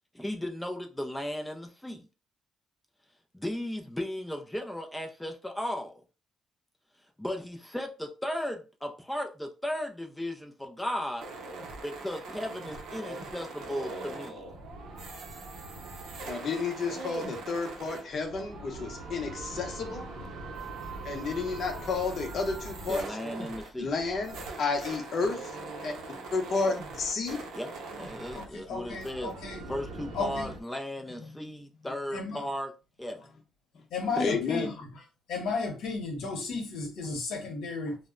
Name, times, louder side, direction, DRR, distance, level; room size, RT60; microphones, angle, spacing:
voice 1, 0.1-2.0 3.3-6.0 7.2-11.3 11.8-14.4 22.9-23.9 27.5-29.3 29.7-32.7 33.0-33.2, left 1 dB, 5° left, 0.3 m, -36 dB
sound 1, 11.2-30.6, right 3 dB, 75° right, 0.6 m, -41 dB
voice 2, 16.3-20.1 21.0-23.2 23.8-25.6 25.8-25.9 26.3-27.4 34.2-34.7 37.9-38.0, left 4 dB, 50° left, 0.7 m, -31 dB
voice 3, 28.4-29.6 30.1-30.5 32.1-32.4 33.9-34.7 35.3-38.0, left 4 dB, 90° left, 0.8 m, -33 dB
2.1 x 2.0 x 3.5 m
cardioid pair, 120°, 0 cm